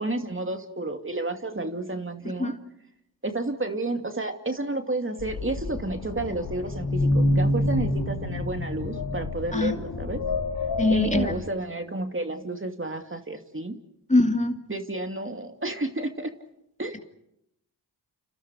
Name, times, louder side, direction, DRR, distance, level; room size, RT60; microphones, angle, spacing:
voice 1, 0.0-2.5 3.2-10.2 10.9-13.7 14.7-16.3 16.8-17.0, right 2 dB, 30° right, 6 dB, 2.6 m, -31 dB
sound 1, 5.2-11.3, left 1 dB, 90° left, 3.1 m, -27 dB
voice 2, 10.8-11.4 14.1-14.6, left 2 dB, 15° left, 5 dB, 2.6 m, -22 dB
29.5 x 28.0 x 4.9 m, 0.78 s
cardioid pair, 40°, 40 cm